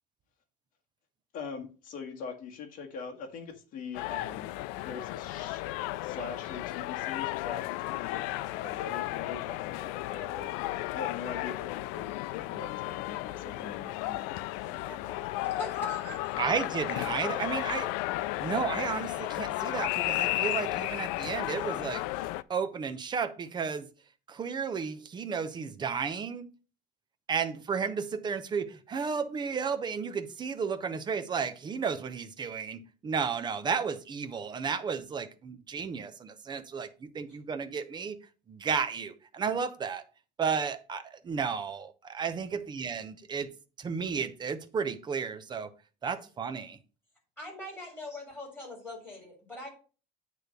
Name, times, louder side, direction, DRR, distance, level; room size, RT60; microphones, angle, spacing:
voice 1, 1.3-5.6 6.0-8.3 8.5-10.5 10.9-14.3, left 5 dB, 45° left, 1.5 m, -42 dB
sound 1, 3.9-22.4, left 17 dB, 85° left, 0.4 m, -34 dB
voice 2, 14.6-16.3 37.3-37.4 47.4-49.7, left 1 dB, 10° left, 3.4 m, -43 dB
voice 3, 16.4-17.9 18.4-22.0 22.5-23.9 24.3-26.5 27.3-38.2 38.5-40.0 40.4-41.9 42.2-43.5 43.8-45.7 46.0-46.8, right 6 dB, 20° right, 0.7 m, -33 dB
8.7 x 3.2 x 6.5 m
cardioid pair, 155°, 20 cm